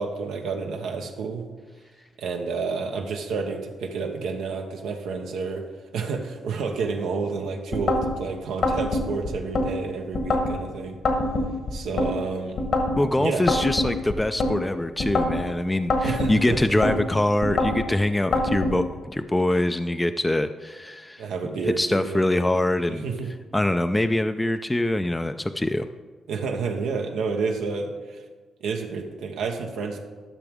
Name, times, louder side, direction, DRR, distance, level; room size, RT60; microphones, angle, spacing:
voice 1, 0.0-1.4 2.2-5.6 5.9-11.0 11.7-12.6 13.2-13.4 16.0-17.0 21.2-22.3 23.0-23.3 26.3-28.2 28.6-30.0, right 4 dB, 85° right, 3 dB, 0.8 m, -30 dB
sound 1, 7.7-8.1 8.6-9.7 10.1-10.6 11.0-12.1 12.6-13.0 13.5-14.5 15.0-15.4 15.9-17.0 17.4-17.8 18.3-18.8, left 2 dB, 65° left, 1.4 m, -24 dB
voice 2, 13.0-21.2 21.6-23.0 23.5-25.9, left 1 dB, 15° left, 9 dB, 0.3 m, -24 dB
11.5 x 6.0 x 3.5 m, 1.4 s
cardioid pair, 80°, 0 cm